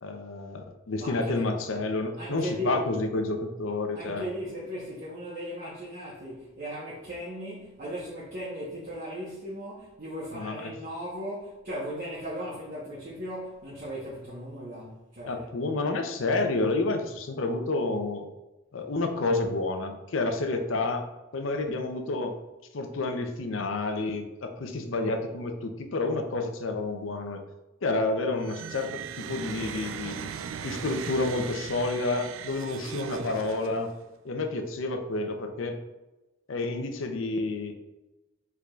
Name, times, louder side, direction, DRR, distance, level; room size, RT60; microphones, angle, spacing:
voice 1, 0.0-4.2 10.3-10.7 15.3-18.3 18.7-21.1 21.3-22.4 22.7-27.4 27.8-30.3 30.6-33.9 34.2-35.8 36.5-37.7, left 2 dB, 80° left, 5 dB, 0.6 m, -29 dB
voice 2, 1.0-1.4 2.2-2.8 3.9-15.5, equal, 50° right, -7 dB, 1.0 m, -37 dB
sound 1, 28.4-34.0, right 7 dB, 85° right, 0.3 m, -38 dB
4.7 x 4.7 x 2.3 m, 1.1 s
head